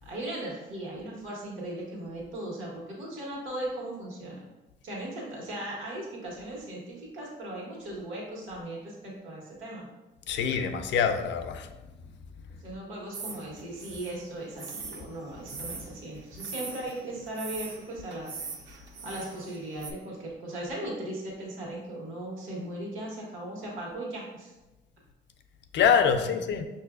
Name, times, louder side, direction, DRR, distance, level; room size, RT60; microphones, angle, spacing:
voice 1, 0.0-4.4 4.8-9.9 12.6-24.5 26.1-26.4, right 1 dB, 80° right, -3 dB, 1.3 m, -38 dB
voice 2, 10.3-11.7 25.7-26.6, left 7 dB, 65° left, 7 dB, 0.4 m, -25 dB
sound 1, 13.1-19.9, right 4 dB, 65° right, 0.6 m, -42 dB
6.0 x 2.6 x 2.4 m, 1.1 s
cardioid pair, 90°, 20 cm